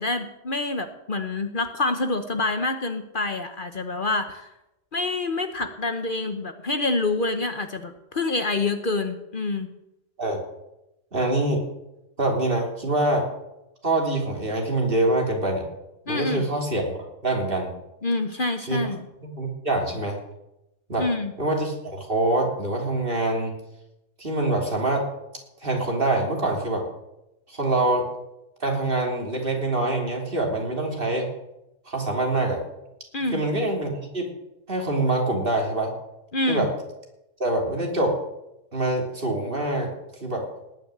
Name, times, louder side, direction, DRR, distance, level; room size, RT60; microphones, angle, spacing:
voice 1, 0.0-4.5 4.9-9.7 16.1-16.4 18.0-19.1 21.0-21.3 33.1-33.4 36.3-36.7, left 2 dB, 45° left, 7 dB, 1.2 m, -27 dB
voice 2, 11.1-11.6 12.2-13.3 13.8-15.6 16.1-16.9 17.2-17.7 18.7-18.8 19.4-20.2 20.9-21.1 21.4-23.5 24.2-25.0 25.6-26.8 27.5-28.1 28.6-31.3 31.9-32.6 33.3-34.2 34.7-35.9 36.5-36.7 37.4-38.2 38.7-39.9 40.2-40.4, right 2 dB, 45° right, 0 dB, 3.5 m, -24 dB
18.5 x 6.5 x 10.0 m, 0.90 s
omnidirectional pair, 1.3 m